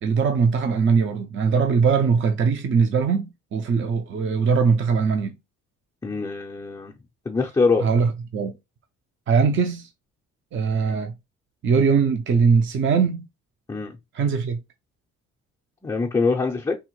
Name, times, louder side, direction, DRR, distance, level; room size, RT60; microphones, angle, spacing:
voice 1, 0.0-5.4 7.8-8.5 9.3-9.9 10.5-11.1 11.6-13.3 14.1-14.6, right 5 dB, 40° right, 0.5 m, -21 dB
voice 2, 6.0-6.9 7.3-7.9 13.7-14.0 15.8-16.8, left 4 dB, 15° left, 0.5 m, -23 dB
3.5 x 2.1 x 3.0 m
cardioid pair, 90°, 30 cm